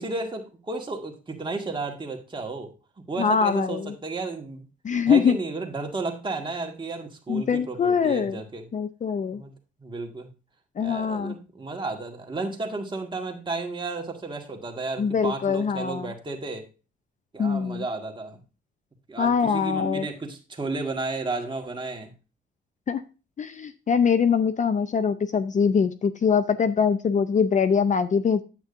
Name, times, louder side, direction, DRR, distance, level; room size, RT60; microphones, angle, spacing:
voice 1, 0.0-2.7 3.1-4.7 5.1-8.7 9.3-9.5 9.8-10.3 10.8-16.6 17.3-18.4 19.1-22.1, right 3 dB, 25° right, 2 dB, 1.8 m, -33 dB
voice 2, 3.2-3.9 4.8-5.4 7.3-8.4 8.7-9.4 10.8-11.4 15.0-16.1 17.4-17.8 19.2-20.1 22.9-23.0 23.4-28.4, left 6 dB, 40° left, 12 dB, 0.6 m, -23 dB
9.0 x 8.2 x 2.6 m, 0.32 s
cardioid pair, 90°, 20 cm